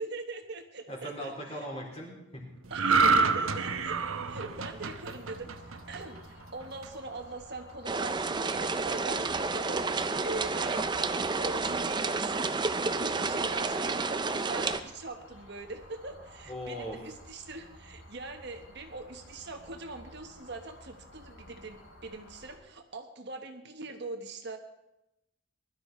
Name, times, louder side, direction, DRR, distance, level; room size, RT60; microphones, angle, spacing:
voice 1, 0.0-1.7 2.7-9.9 10.2-11.1 11.4-24.6, right 3 dB, 55° right, 5 dB, 1.4 m, -42 dB
voice 2, 0.9-2.5 16.4-17.0, equal, 30° left, -2 dB, 4.1 m, -39 dB
sound 1, 2.7-6.2 6.6-6.9, right 4 dB, 85° right, 1.0 m, -27 dB
sound 2, 3.5-22.6, equal, 75° left, 6.3 m, -52 dB
sound 3, 7.9-14.8, right 3 dB, 20° right, 0.5 m, -30 dB
20.5 x 12.5 x 4.5 m, 0.91 s
head